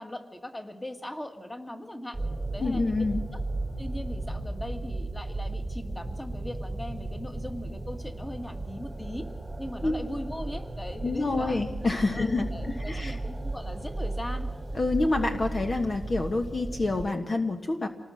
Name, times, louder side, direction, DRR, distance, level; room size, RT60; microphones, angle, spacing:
voice 1, 0.0-2.2 2.5-3.4 3.8-9.3 9.6-11.6 12.1-14.5, left 1 dB, 15° left, 6 dB, 2.0 m, -39 dB
sound 1, 2.1-17.1, right 2 dB, 15° right, 1.5 m, -35 dB
voice 2, 2.6-3.2 9.8-10.0 11.0-12.5 12.8-13.2 14.7-17.9, left 3 dB, 40° left, 4 dB, 1.4 m, -27 dB
27.0 x 19.0 x 6.5 m, 1.3 s
wide cardioid pair, 100°, 0 cm